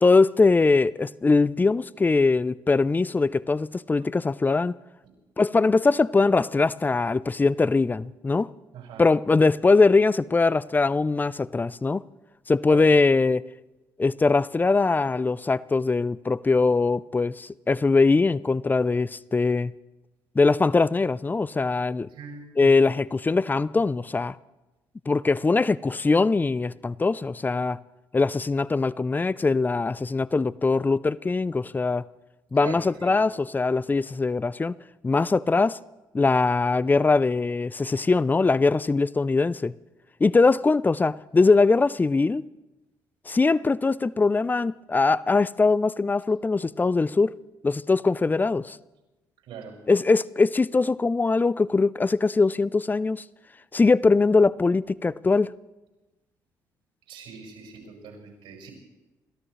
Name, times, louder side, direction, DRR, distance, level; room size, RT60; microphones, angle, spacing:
voice 1, 0.0-4.7 5.4-8.5 9.0-12.0 12.5-13.4 14.0-19.7 20.4-22.1 22.6-24.3 25.1-27.8 28.1-32.0 32.5-34.7 35.0-35.8 36.1-39.7 40.2-42.4 43.3-47.3 47.6-48.8 49.9-53.2 53.7-55.5, left 3 dB, 20° left, 0.5 m, -21 dB
voice 2, 8.7-9.0 12.7-12.8 22.1-22.7 32.5-33.2 49.5-49.8 57.1-58.7, right 6 dB, 75° right, 5.7 m, -41 dB
29.5 x 13.5 x 3.2 m
supercardioid pair, 60°, 9 cm